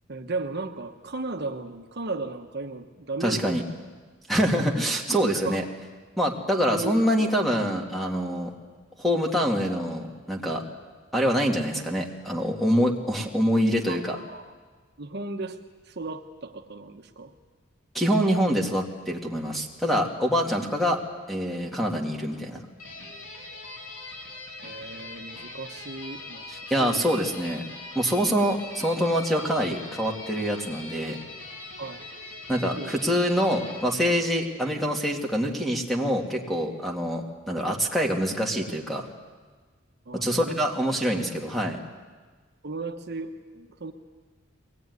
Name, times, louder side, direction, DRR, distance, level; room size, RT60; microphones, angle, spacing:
voice 1, 0.1-3.6 4.9-5.6 6.7-7.3 13.9-14.5 15.0-15.6 15.8-17.3 24.6-27.0 31.8-32.0 32.8-32.9 40.1-40.6 42.6-43.9, right 3 dB, 55° right, 5 dB, 1.1 m, -35 dB
voice 2, 3.2-3.6 4.3-5.6 6.2-8.5 9.0-10.6 11.1-14.2 17.9-21.0 21.3-22.6 26.5-27.6 28.0-31.2 32.5-39.1 40.1-41.8, equal, ahead, 1 dB, 2.3 m, -25 dB
sound 1, 22.8-33.8, left 2 dB, 85° left, 5.8 m, -41 dB
22.5 x 18.5 x 9.6 m, 1.4 s
head